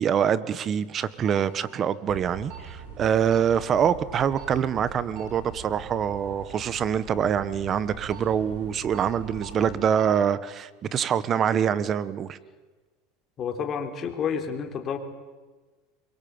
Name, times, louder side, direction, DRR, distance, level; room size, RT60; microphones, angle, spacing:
voice 1, 0.0-12.4, right 8 dB, 35° right, 1.3 m, -25 dB
sound 1, 0.8-1.2 1.6-1.7 2.1-9.8, right 5 dB, 90° right, 5.5 m, -43 dB
sound 2, 1.3-1.4 2.5-2.7 3.3-3.5 4.4-4.6 5.1-5.3 7.8-8.2 8.9-9.1 9.4-9.5 9.9-10.1, right 8 dB, 50° right, 6.7 m, -42 dB
voice 2, 13.4-15.0, left 7 dB, 35° left, 3.6 m, -30 dB
25.5 x 23.0 x 8.9 m
supercardioid pair, 125°, 0 cm